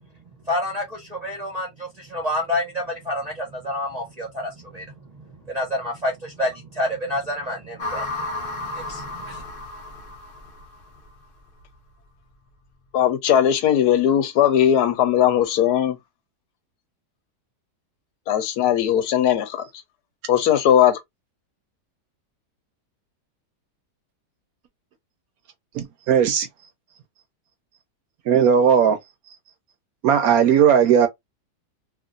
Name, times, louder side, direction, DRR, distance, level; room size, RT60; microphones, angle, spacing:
voice 1, 0.5-4.9 5.1-8.3 8.6-9.4, left 1 dB, 40° right, 0.6 m, -28 dB
sound 1, 7.8-11.1, left 2 dB, 50° left, 0.6 m, -33 dB
voice 2, 12.9-16.0 18.3-19.6 20.3-21.0, left 10 dB, 75° left, 1.1 m, -18 dB
voice 3, 25.7-26.5 28.3-29.0 30.0-31.1, right 8 dB, 70° right, 1.0 m, -17 dB
2.9 x 2.5 x 2.4 m
omnidirectional pair, 1.8 m